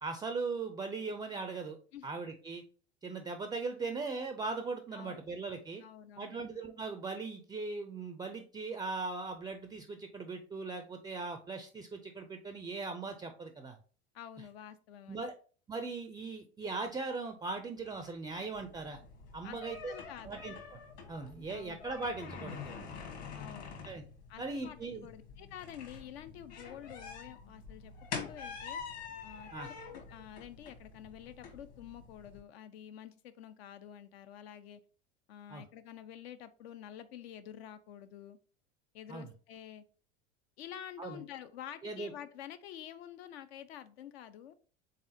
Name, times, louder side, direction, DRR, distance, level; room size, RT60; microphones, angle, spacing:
voice 1, 0.0-1.8 2.0-2.6 3.0-5.8 6.2-13.8 15.1-15.3 15.7-19.0 19.3-20.0 20.2-20.5 21.1-22.9 23.8-24.0 24.4-25.1 29.5-29.7 35.5-35.6 39.1-39.3 41.0-41.2 41.8-42.1, right 3 dB, 15° right, 7 dB, 0.4 m, -39 dB
voice 2, 4.9-5.2 5.8-6.4 14.1-15.2 19.4-19.6 19.9-20.4 21.5-21.8 23.3-23.8 24.3-28.8 29.2-29.5 29.9-34.8 35.3-38.4 38.9-39.8 40.6-44.5, left 10 dB, 70° left, 11 dB, 0.5 m, -49 dB
sound 1, 18.5-32.4, left 6 dB, 50° left, 1.3 m, -46 dB
4.0 x 3.6 x 2.6 m, 0.40 s
hypercardioid pair, 80°, 33 cm